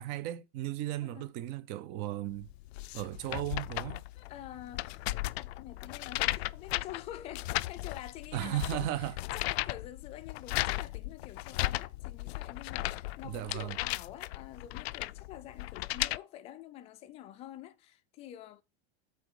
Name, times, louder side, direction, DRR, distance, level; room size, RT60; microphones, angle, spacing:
voice 1, 0.0-2.5 2.9-4.0 8.3-9.2 13.2-13.8, right 14 dB, 30° right, 0.6 m, -35 dB
sound 1, 2.4-16.2, left 18 dB, 75° left, 0.5 m, -36 dB
voice 2, 4.2-18.6, left 12 dB, 20° left, 0.5 m, -47 dB
8.5 x 4.0 x 6.3 m
supercardioid pair, 170°, 32 cm